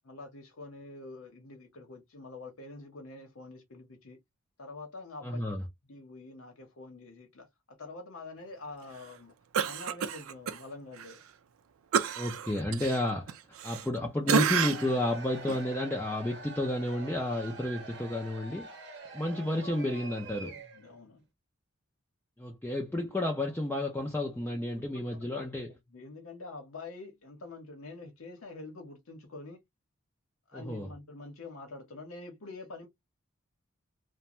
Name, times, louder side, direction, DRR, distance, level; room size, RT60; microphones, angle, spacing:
voice 1, 0.0-4.2 4.6-5.4 5.9-9.3 9.6-11.2 20.4-21.2 24.8-25.5 25.9-29.6 30.5-32.9, left 3 dB, 80° left, 0.9 m, -46 dB
voice 2, 5.2-5.7 12.2-13.4 13.6-18.7 19.1-20.5 22.4-25.7 30.5-30.9, left 1 dB, 10° left, 0.4 m, -31 dB
Cough, 9.5-10.6 11.0-11.1 11.9-14.0 14.3-15.0 15.5-15.6, right 7 dB, 85° right, 0.4 m, -29 dB
Cheering / Crowd, 14.2-20.9, right 3 dB, 55° right, 0.7 m, -46 dB
2.5 x 2.1 x 2.9 m
head